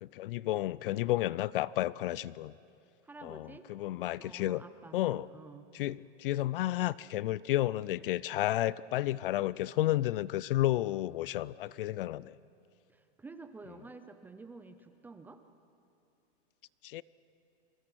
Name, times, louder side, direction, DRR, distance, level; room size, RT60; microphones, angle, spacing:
voice 1, 0.0-2.5 3.2-4.6 4.9-5.3 5.7-12.3 16.8-17.0, left 15 dB, 55° left, 21 dB, 0.5 m, -32 dB
voice 2, 3.0-3.6 4.2-5.7 12.9-15.4, right 3 dB, 5° right, 9 dB, 0.5 m, -50 dB
28.0 x 23.5 x 6.2 m, 2.7 s
supercardioid pair, 150°, 34 cm